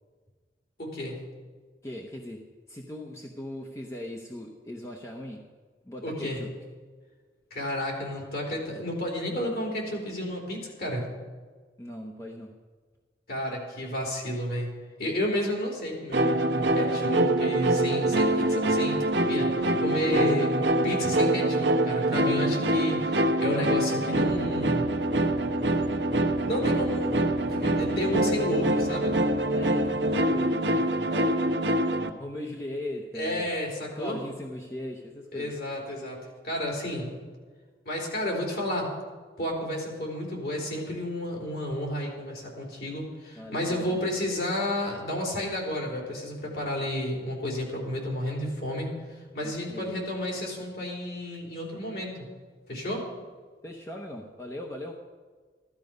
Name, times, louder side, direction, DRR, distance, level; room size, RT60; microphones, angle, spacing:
voice 1, 0.8-1.2 6.0-6.4 7.5-11.1 13.3-14.7 15.0-19.0 19.3-19.5 19.8-20.5 20.8-24.8 26.4-27.2 27.4-29.2 33.1-34.2 35.3-37.1 37.9-38.9 39.4-52.3 52.7-53.1, left 1 dB, 60° left, -2 dB, 4.0 m, -31 dB
voice 2, 1.8-5.5 5.8-6.5 11.8-12.5 29.5-31.5 32.2-33.5 33.9-35.6 43.3-44.0 49.4-50.0 53.6-54.9, left 1 dB, 15° left, 0 dB, 0.9 m, -39 dB
sound 1, 16.1-32.1, right 1 dB, 80° right, 1.1 m, -25 dB
15.0 x 13.0 x 5.3 m, 1.5 s
head